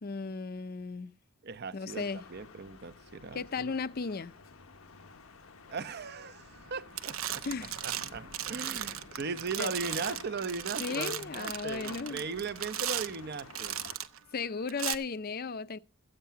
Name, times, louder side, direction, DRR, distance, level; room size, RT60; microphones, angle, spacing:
voice 1, 0.0-1.1 1.7-2.2 3.3-4.3 7.4-7.8 9.6-9.7 10.8-12.2 14.3-15.8, left 4 dB, 45° left, 0.6 m, -35 dB
voice 2, 1.4-3.7 5.7-7.4 7.8-13.8, right 4 dB, 50° right, 0.7 m, -38 dB
sound 1, 1.9-14.0, left 4 dB, 90° left, 1.1 m, -50 dB
sound 2, 6.5-6.7 7.0-14.2 14.7-14.9, right 11 dB, 80° right, 0.9 m, -37 dB
14.0 x 8.8 x 5.7 m
head